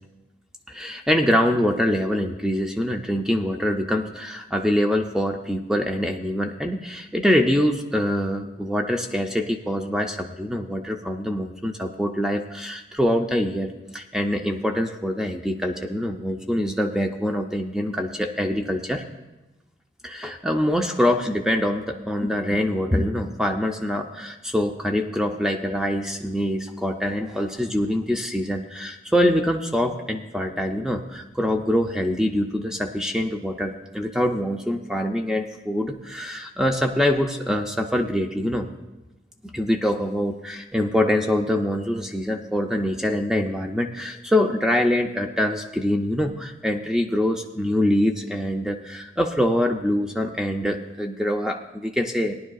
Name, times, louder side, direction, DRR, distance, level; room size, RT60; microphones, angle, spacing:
voice 1, 0.7-19.0 20.0-38.7 39.5-52.4, equal, 5° right, 3 dB, 0.5 m, -24 dB
18.0 x 11.0 x 2.3 m, 1.0 s
head